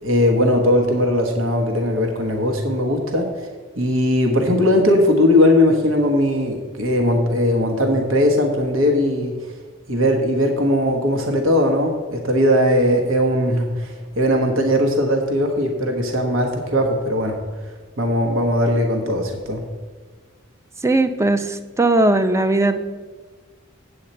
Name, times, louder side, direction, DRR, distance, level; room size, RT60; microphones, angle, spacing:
voice 1, 0.0-3.3 3.8-9.4 9.9-17.4 18.0-19.6, left 1 dB, 85° right, 2 dB, 1.3 m, -19 dB
voice 2, 20.8-22.8, right 2 dB, 15° right, 10 dB, 0.5 m, -18 dB
8.4 x 7.9 x 4.3 m, 1.5 s
head